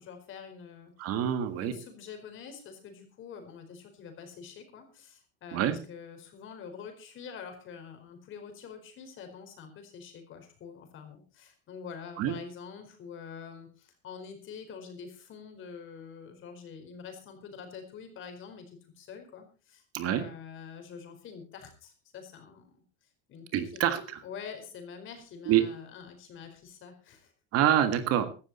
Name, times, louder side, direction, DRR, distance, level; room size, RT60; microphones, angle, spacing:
voice 1, 0.0-1.1 1.6-23.8 24.2-27.3, left 6 dB, 35° left, 6 dB, 4.6 m, -46 dB
voice 2, 1.0-1.7 5.5-5.8 12.2-12.4 19.9-20.2 23.5-24.2 25.4-25.6 27.5-28.2, right 11 dB, 45° right, 10 dB, 1.7 m, -26 dB
16.5 x 13.0 x 4.2 m, 0.35 s
cardioid pair, 155°, 33 cm